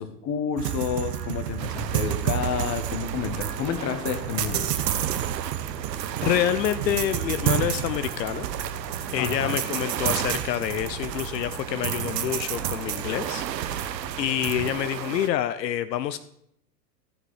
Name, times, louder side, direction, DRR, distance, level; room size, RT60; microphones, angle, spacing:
voice 1, 0.0-4.7 9.2-9.6, left 8 dB, 35° left, 9 dB, 1.3 m, -30 dB
sound 1, 0.6-14.7, right 10 dB, 75° right, 1.0 m, -30 dB
sound 2, 1.6-15.3, right 12 dB, 90° right, 0.6 m, -36 dB
sound 3, 3.1-14.3, right 1 dB, ahead, 1.4 m, -47 dB
voice 2, 6.2-8.5 9.1-16.2, left 11 dB, 85° left, 12 dB, 0.6 m, -27 dB
12.5 x 6.4 x 4.8 m, 0.73 s
hypercardioid pair, 100°, 49 cm